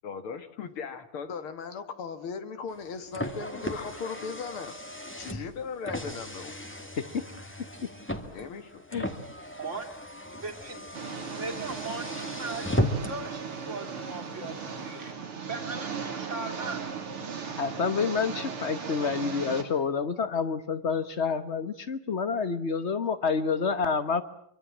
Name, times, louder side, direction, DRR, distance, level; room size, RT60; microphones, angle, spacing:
voice 1, 0.0-4.7 5.2-6.6 8.3-8.8, left 5 dB, 80° left, 2.6 m, -38 dB
Car, 2.7-13.3, equal, 5° left, 1.8 m, -36 dB
voice 2, 10.4-10.8 11.4-15.1 15.5-16.8, right 3 dB, 35° right, 3.1 m, -38 dB
Engine, 10.9-19.6, right 6 dB, 90° right, 3.7 m, -37 dB
voice 3, 17.6-24.2, left 5 dB, 40° left, 1.2 m, -28 dB
25.5 x 24.0 x 7.4 m
omnidirectional pair, 2.3 m